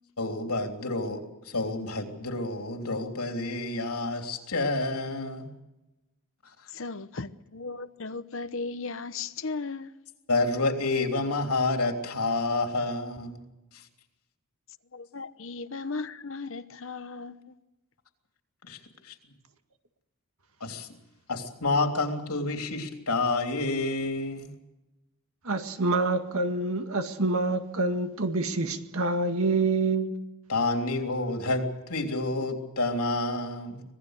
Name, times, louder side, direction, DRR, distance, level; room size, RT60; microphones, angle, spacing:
voice 1, 0.2-5.5 10.3-13.4 13.7-13.8 18.6-19.1 20.6-20.9 21.3-24.5 30.5-33.8, left 2 dB, 90° left, 3.3 m, -29 dB
voice 2, 6.7-9.9 14.9-17.5, left 4 dB, 60° left, 1.0 m, -36 dB
voice 3, 25.4-30.1, right 3 dB, 75° right, 1.9 m, -27 dB
25.5 x 19.0 x 6.6 m
head